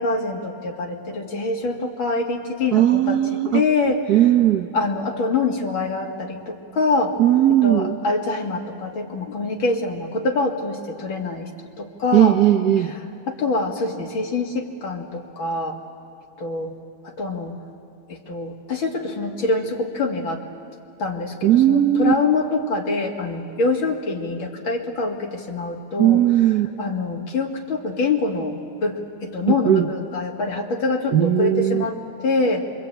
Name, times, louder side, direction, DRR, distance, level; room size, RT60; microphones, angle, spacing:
voice 1, 0.0-4.2 4.7-7.2 7.6-11.5 11.8-12.4 12.9-13.0 13.3-15.8 16.4-16.7 17.2-17.6 18.1-20.4 21.0-26.2 26.8-32.7, left 3 dB, 75° left, 1 dB, 2.9 m, -25 dB
voice 2, 2.7-3.6 4.1-4.7 7.2-8.0 12.1-12.9 21.4-22.2 26.0-26.7 29.5-29.9 31.1-31.8, right 12 dB, 60° right, 7 dB, 1.1 m, -17 dB
27.0 x 24.5 x 8.8 m, 2.5 s
omnidirectional pair, 2.2 m